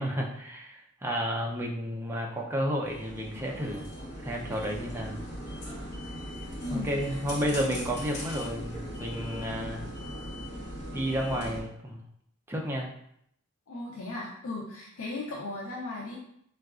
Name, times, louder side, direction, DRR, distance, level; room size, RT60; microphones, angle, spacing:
voice 1, 0.0-3.9 4.2-5.2 6.8-9.9 10.9-12.0 12.5-12.9, equal, 10° right, -1 dB, 0.4 m, -31 dB
sound 1, 2.8-11.6, equal, 55° left, 0.8 m, -39 dB
voice 2, 6.6-7.9 13.7-16.2, left 2 dB, 80° left, -3 dB, 0.5 m, -37 dB
3.8 x 2.3 x 2.3 m, 0.72 s
head